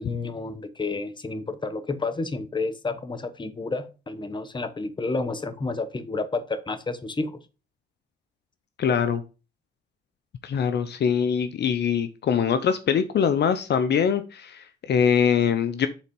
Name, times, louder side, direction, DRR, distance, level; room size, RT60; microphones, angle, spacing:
voice 1, 0.0-7.4, left 3 dB, 25° left, 10 dB, 1.1 m, -30 dB
voice 2, 8.8-9.2 10.4-15.9, left 7 dB, 60° left, 11 dB, 0.7 m, -23 dB
7.2 x 4.1 x 5.2 m, 0.32 s
cardioid pair, 90°, 20 cm